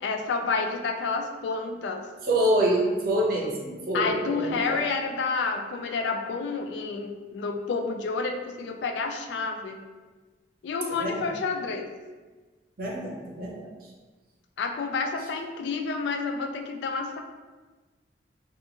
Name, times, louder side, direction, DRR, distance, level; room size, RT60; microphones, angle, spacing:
voice 1, 0.0-2.0 3.9-9.8 10.6-11.9 14.6-17.2, left 4 dB, 75° left, 4 dB, 0.3 m, -29 dB
voice 2, 2.3-4.8 11.0-11.3 12.8-13.7, right 1 dB, 55° right, -2 dB, 0.6 m, -26 dB
2.8 x 2.3 x 2.6 m, 1.3 s
head